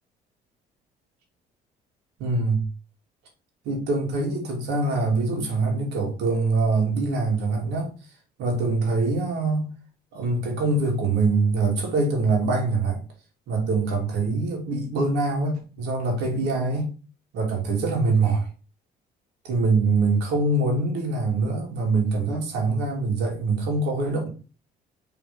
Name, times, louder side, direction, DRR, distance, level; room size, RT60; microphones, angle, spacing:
voice 1, 2.2-2.6 3.6-7.9 8.4-9.7 10.1-13.0 13.5-16.9 17.3-18.5 19.4-24.3, right 3 dB, 85° right, 2.8 m, -24 dB
5.2 x 4.2 x 5.3 m
cardioid pair, 110°, 17 cm